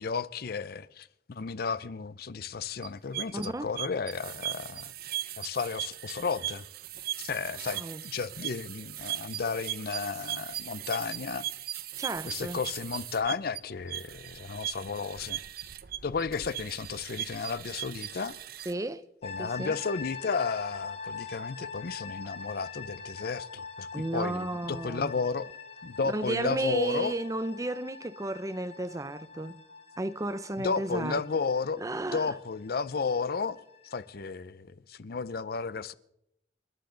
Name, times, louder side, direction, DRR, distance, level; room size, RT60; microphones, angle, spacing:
voice 1, 0.0-4.9 5.4-6.7 7.2-11.5 12.3-15.4 16.0-18.4 19.2-25.5 25.8-27.1 30.6-31.8 32.1-33.6 33.9-35.9, left 5 dB, 55° left, 0.6 m, -33 dB
sound 1, 2.8-18.7, right 13 dB, 55° right, 0.6 m, -38 dB
voice 2, 3.3-3.7 7.7-8.0 12.0-12.6 18.7-19.1 19.4-19.8 23.9-25.1 26.0-29.6 30.0-31.2 31.8-32.3, right 2 dB, 20° right, 0.6 m, -33 dB
sound 2, 19.2-34.2, left 5 dB, 35° left, 1.5 m, -44 dB
27.5 x 11.5 x 3.9 m
head